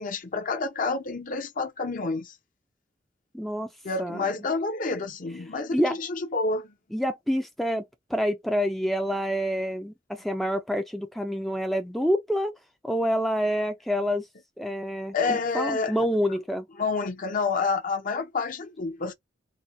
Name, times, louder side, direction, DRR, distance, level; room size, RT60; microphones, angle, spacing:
voice 1, 0.0-2.3 3.8-6.7 15.1-16.0 16.8-19.1, left 4 dB, 45° left, 0.7 m, -29 dB
voice 2, 3.3-3.7 4.0-4.3 5.7-5.9 6.9-12.5 12.8-14.3 14.6-16.7, equal, ahead, 0.4 m, -27 dB
4.2 x 2.1 x 2.6 m
head